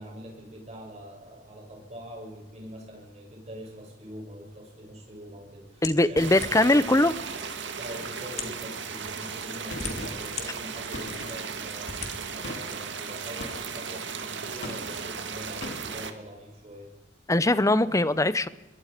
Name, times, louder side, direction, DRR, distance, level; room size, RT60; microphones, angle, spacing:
voice 1, 0.0-7.0 7.8-16.9, equal, 35° right, 0 dB, 7.1 m, -43 dB
sound 1, 5.8-6.8 7.6-7.7 8.3-8.6 9.4-10.5 11.0-11.1 11.8-12.1, left 5 dB, 40° left, 2.9 m, -37 dB
voice 2, 5.8-7.1 17.3-18.5, left 2 dB, 20° left, 15 dB, 0.8 m, -21 dB
sound 2, 6.2-16.1, right 6 dB, 75° right, 2.0 m, -36 dB
Gunshot gunfire, 9.7-10.4 10.9-11.7 12.4-12.8 13.4-13.9 14.6-15.1 15.6-16.0, left 2 dB, 80° left, 2.5 m, -40 dB
26.5 x 22.0 x 5.1 m, 1.1 s
head